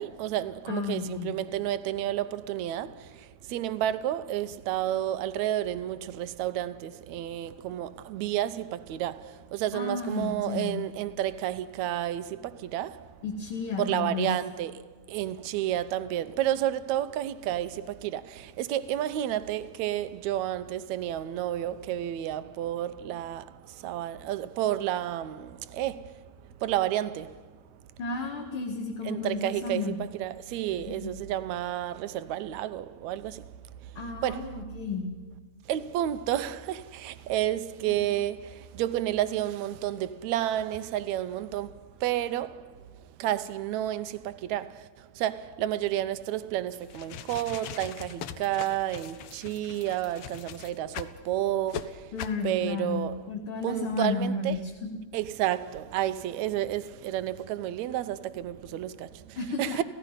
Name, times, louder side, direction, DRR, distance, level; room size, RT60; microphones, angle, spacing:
voice 1, 0.0-13.1 13.8-26.2 26.6-27.4 29.1-33.4 34.2-34.5 35.7-42.8 43.2-44.9 45.2-52.1 52.4-53.2 53.6-54.6 55.1-59.8, right 12 dB, 75° right, 1.9 m, -31 dB
voice 2, 0.7-1.3 9.7-10.8 13.2-14.3 28.0-30.0 30.8-31.1 34.0-35.1 37.8-38.1 52.1-55.0 59.4-59.8, left 4 dB, 50° left, 2.5 m, -33 dB
sound 1, 46.8-51.2 51.7-51.8 52.2-52.4, left 10 dB, 75° left, 1.3 m, -40 dB
29.5 x 16.0 x 5.6 m
omnidirectional pair, 3.6 m